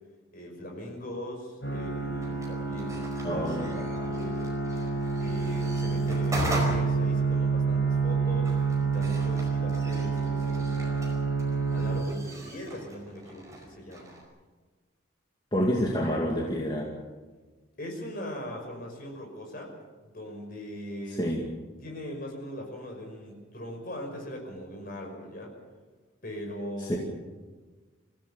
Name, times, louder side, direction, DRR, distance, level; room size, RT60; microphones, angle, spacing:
voice 1, 0.3-4.5 5.2-11.2 11.7-14.1 17.8-19.7 20.1-21.2 21.8-25.5 26.2-27.0, equal, 45° left, 2 dB, 5.8 m, -40 dB
sound 1, 1.6-12.0, right 4 dB, 65° left, 5.8 m, -28 dB
sound 2, 2.2-14.2, right 1 dB, 15° right, 4.9 m, -40 dB
voice 2, 3.2-3.7 15.5-16.9 21.1-21.4 26.8-27.0, equal, 20° left, -2 dB, 2.2 m, -28 dB
25.0 x 16.0 x 7.1 m, 1.3 s
head